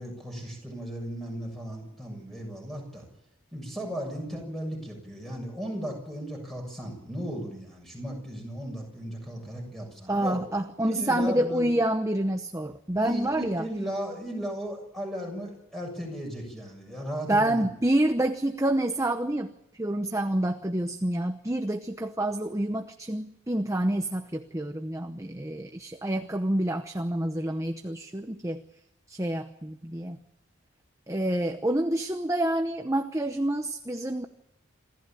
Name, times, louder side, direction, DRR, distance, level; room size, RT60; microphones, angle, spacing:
voice 1, 0.0-3.0 3.5-10.4 10.8-11.7 12.9-17.6, equal, ahead, 2 dB, 7.0 m, -36 dB
voice 2, 10.1-13.7 17.3-19.5 19.8-28.6 29.1-30.2 31.1-34.3, right 1 dB, 15° right, 7 dB, 0.8 m, -28 dB
27.0 x 14.5 x 9.1 m, 0.86 s
head